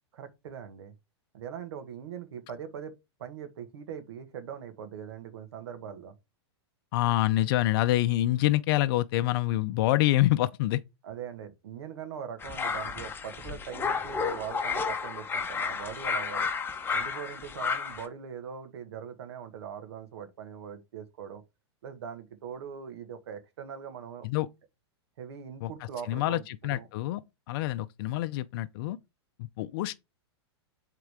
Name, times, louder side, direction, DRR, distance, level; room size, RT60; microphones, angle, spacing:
voice 1, 0.1-0.9 1.3-6.1 11.0-16.5 16.9-21.4 21.8-24.3 25.2-26.9, right 8 dB, 70° right, 1.7 m, -41 dB
voice 2, 6.9-10.8 24.2-24.5 25.6-25.7 26.1-27.2 27.5-29.0 29.4-29.9, left 15 dB, 55° left, 0.5 m, -26 dB
sound 1, 12.4-18.0, left 5 dB, 15° left, 0.9 m, -32 dB
7.9 x 3.8 x 3.6 m
hypercardioid pair, 130°, 14 cm